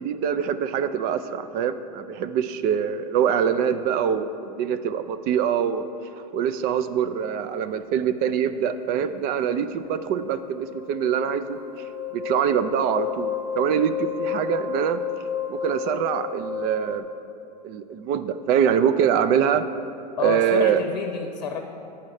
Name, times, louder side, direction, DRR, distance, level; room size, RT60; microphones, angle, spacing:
voice 1, 0.0-5.8 6.3-11.6 12.1-15.0 15.5-17.1 17.6-19.7 20.2-20.8, right 8 dB, 45° right, 11 dB, 0.4 m, -24 dB
sound 1, 9.3-17.0, left 9 dB, 50° left, 0.8 m, -32 dB
voice 2, 20.2-21.6, left 7 dB, 90° left, 4 dB, 0.7 m, -29 dB
8.7 x 4.3 x 6.4 m, 2.7 s
hypercardioid pair, 110°, 21 cm